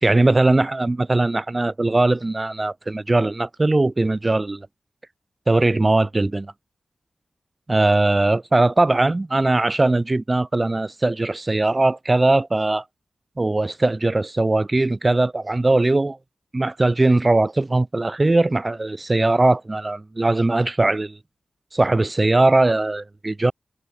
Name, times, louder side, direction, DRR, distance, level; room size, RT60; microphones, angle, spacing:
voice 1, 0.0-4.7 5.5-6.5 7.7-12.8 13.4-16.2 16.5-21.2 21.7-23.5, right 2 dB, 30° right, 3.0 m, -20 dB
cardioid pair, 50°, 0 cm